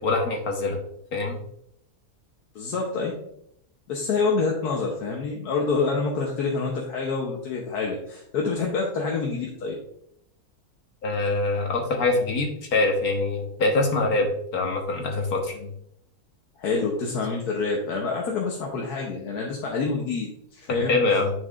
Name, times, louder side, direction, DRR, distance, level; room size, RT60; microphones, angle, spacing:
voice 1, 0.0-0.8 1.1-1.4 11.0-15.7 20.7-21.3, left 3 dB, 70° left, 2 dB, 1.6 m, -24 dB
voice 2, 2.5-3.2 3.9-9.8 16.6-21.0, left 4 dB, 90° left, -1 dB, 1.5 m, -27 dB
9.8 x 4.7 x 2.4 m, 0.73 s
omnidirectional pair, 1.6 m